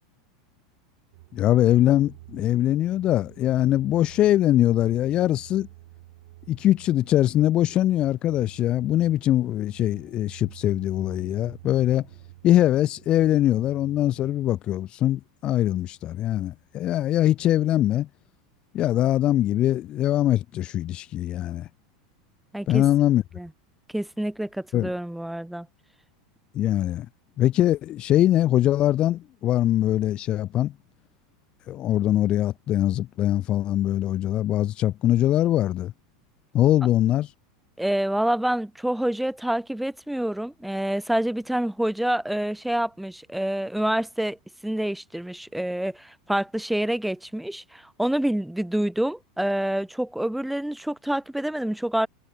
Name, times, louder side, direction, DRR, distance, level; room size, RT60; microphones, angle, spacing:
sound 1, 1.1-14.5, right 18 dB, 70° right, 5.2 m, -49 dB
voice 1, 1.3-5.7 6.5-12.1 12.4-18.1 18.7-21.7 22.7-23.2 24.7-24.9 26.5-27.1 27.4-30.7 31.7-35.9 36.5-37.3, left 13 dB, 40° left, 0.5 m, -22 dB
voice 2, 22.5-22.8 23.4-23.5 23.9-25.7 37.8-44.4 44.6-52.1, right 1 dB, 5° right, 1.2 m, -27 dB
hypercardioid pair, 105°, 2 cm